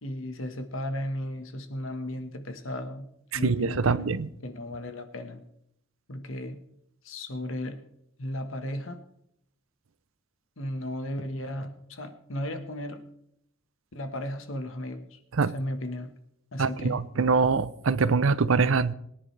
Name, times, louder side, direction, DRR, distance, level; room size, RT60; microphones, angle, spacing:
voice 1, 0.0-3.1 3.3-5.4 6.1-6.6 7.0-7.8 8.2-9.0 10.6-13.1 13.9-15.2 15.5-16.1 16.5-17.0, left 1 dB, 75° left, 1.4 m, -35 dB
voice 2, 3.3-4.3 15.3-15.5 16.6-18.9, right 4 dB, 80° right, 0.6 m, -24 dB
23.0 x 10.0 x 3.3 m
head